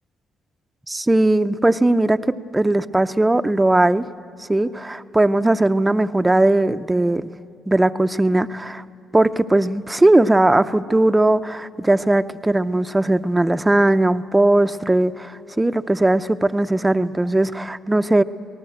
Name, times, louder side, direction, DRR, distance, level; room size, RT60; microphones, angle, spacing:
voice 1, 0.9-4.1 4.4-7.3 7.7-8.8 9.1-18.2, right 2 dB, 15° right, 11 dB, 0.6 m, -18 dB
27.0 x 19.0 x 7.9 m, 2.8 s
cardioid pair, 90°, 0 cm